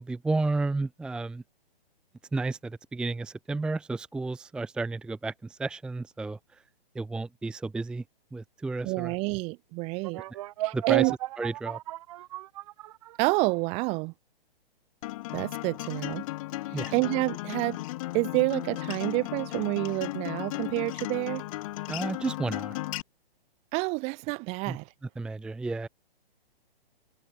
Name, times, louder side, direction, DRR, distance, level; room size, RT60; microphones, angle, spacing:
voice 1, 0.0-1.4 2.3-6.4 6.9-8.0 8.3-9.2 10.7-11.1 11.4-11.8 16.7-16.9 21.9-22.8 24.7-24.8 25.2-25.9, right 3 dB, 5° right, 0.9 m, -32 dB
voice 2, 8.8-10.2 10.6-11.1 13.2-14.1 15.3-16.2 16.7-17.8 18.1-21.4 23.7-24.9, right 27 dB, 20° right, 1.3 m, -28 dB
sound 1, 10.0-13.6, right 16 dB, 35° right, 2.7 m, -37 dB
Acoustic guitar, 15.0-23.0, left 18 dB, 35° left, 2.9 m, -35 dB
hypercardioid pair, 155°, 30 cm